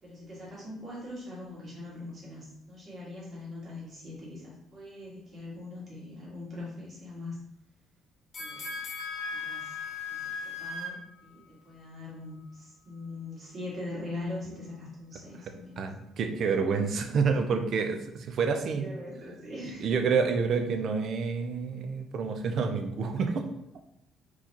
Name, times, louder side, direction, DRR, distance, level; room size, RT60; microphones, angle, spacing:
voice 1, 0.0-7.4 8.4-8.7 9.3-9.8 10.1-15.9 18.8-19.9 20.6-20.7, left 2 dB, 35° right, -6 dB, 1.8 m, -42 dB
sound 1, 8.3-11.4 11.8-11.9, left 5 dB, 35° left, 0.9 m, -44 dB
Wind instrument woodwind instrument, 8.4-11.0, left 4 dB, 85° right, 0.8 m, -37 dB
voice 2, 15.8-18.9 19.8-23.5, right 5 dB, 55° right, 6 dB, 0.5 m, -28 dB
4.5 x 4.0 x 2.9 m, 0.80 s
cardioid pair, 140°, 0 cm